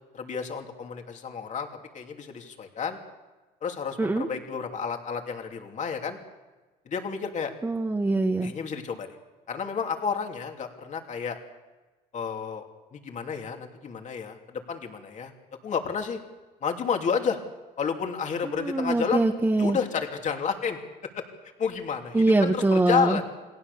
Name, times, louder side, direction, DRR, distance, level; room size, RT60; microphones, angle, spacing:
voice 1, 0.1-1.7 1.9-3.0 3.6-6.2 6.8-7.5 8.4-9.1 9.5-11.4 12.1-12.6 12.9-15.3 15.6-16.2 16.6-17.4 17.8-19.2 19.6-20.8 21.6-23.2, left 6 dB, 45° left, 3 dB, 2.9 m, -30 dB
voice 2, 7.6-8.5 18.4-19.8 22.1-23.2, right 2 dB, 15° right, 2 dB, 1.7 m, -23 dB
29.5 x 19.0 x 7.0 m, 1.2 s
cardioid pair, 110°, 17 cm